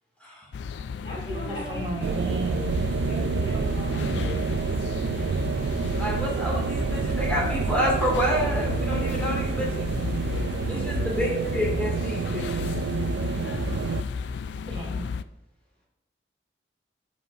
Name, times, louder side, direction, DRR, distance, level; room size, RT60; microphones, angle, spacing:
sound 1, 0.5-15.2, left 5 dB, 85° left, 0.3 m, -33 dB
voice 1, 1.0-2.3 2.5-2.6 3.0-4.4 13.3-14.4, equal, 30° left, -6 dB, 2.8 m, -40 dB
voice 2, 1.7-2.7 14.7-15.0, right 2 dB, 30° right, -1 dB, 1.5 m, -33 dB
sound 2, 2.0-14.0, right 5 dB, 75° right, 0.3 m, -28 dB
voice 3, 5.9-9.9 10.7-12.4, equal, 10° left, -4 dB, 2.2 m, -28 dB
14.0 x 4.9 x 2.6 m, 0.84 s
head